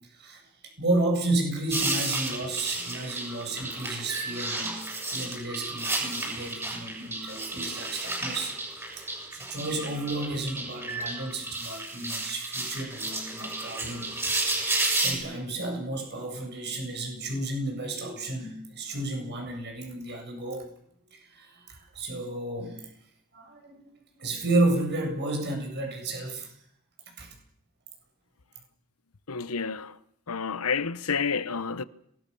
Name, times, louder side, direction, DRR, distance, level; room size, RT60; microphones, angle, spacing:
voice 1, 0.8-4.8 5.1-14.1 14.4-20.7 21.1-22.9 23.3-23.9 24.2-26.5 27.2-27.3, right 2 dB, 50° right, 7.9 m, -32 dB
sound 1, 1.7-15.1, right 2 dB, 10° right, 7.6 m, -32 dB
voice 2, 29.3-30.0 30.3-31.8, left 5 dB, 85° left, 1.0 m, -29 dB
26.5 x 19.5 x 7.1 m
head